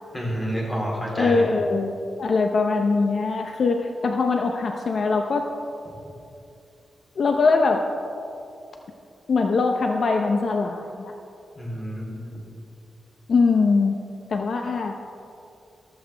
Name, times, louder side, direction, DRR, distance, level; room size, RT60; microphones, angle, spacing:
voice 1, 0.1-1.4 11.5-12.4, equal, 15° left, -3 dB, 3.2 m, -29 dB
voice 2, 1.2-5.4 7.2-7.8 9.3-11.1 13.3-14.0 14.3-14.9, left 4 dB, 60° left, 3 dB, 0.7 m, -22 dB
15.0 x 13.5 x 3.4 m, 2.6 s
wide cardioid pair, 115°, 0 cm